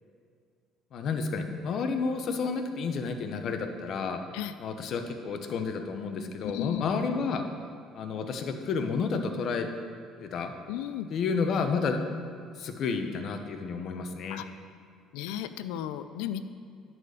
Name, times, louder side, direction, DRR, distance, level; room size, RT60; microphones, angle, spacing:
voice 1, 0.9-4.2 4.6-7.4 7.9-9.7 10.2-10.5 11.1-12.0 12.6-14.4, left 5 dB, 60° left, 6 dB, 0.9 m, -30 dB
voice 2, 6.4-6.9 10.7-11.1 14.3-14.5 15.1-16.4, left 11 dB, 85° left, 12 dB, 0.4 m, -34 dB
11.0 x 4.3 x 6.7 m, 2.3 s
supercardioid pair, 85°, 0 cm